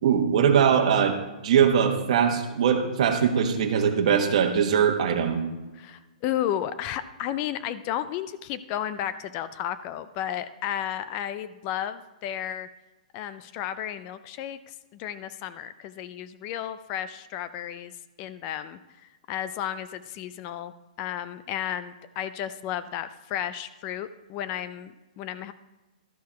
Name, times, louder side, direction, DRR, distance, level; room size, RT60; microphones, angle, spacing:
voice 1, 0.0-1.2 1.4-5.4, right 7 dB, 50° right, 2 dB, 1.2 m, -21 dB
voice 2, 5.8-12.7 13.1-17.9 18.2-18.8 19.3-25.5, left 11 dB, 25° left, 14 dB, 0.3 m, -33 dB
12.5 x 4.6 x 5.7 m, 1.1 s
hypercardioid pair, 160°, 4 cm